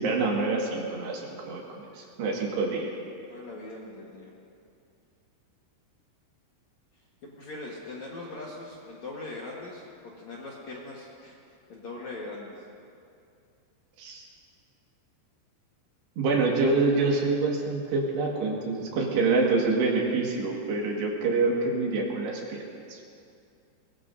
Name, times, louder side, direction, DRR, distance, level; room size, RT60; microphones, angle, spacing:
voice 1, 0.0-2.9 14.0-14.3 16.2-22.6 22.9-23.0, right 3 dB, 70° right, -2 dB, 3.9 m, -26 dB
voice 2, 3.3-4.3 7.2-11.4 11.7-12.6, left 2 dB, 60° left, -4 dB, 2.1 m, -41 dB
22.5 x 21.0 x 2.7 m, 2.5 s
omnidirectional pair, 5.1 m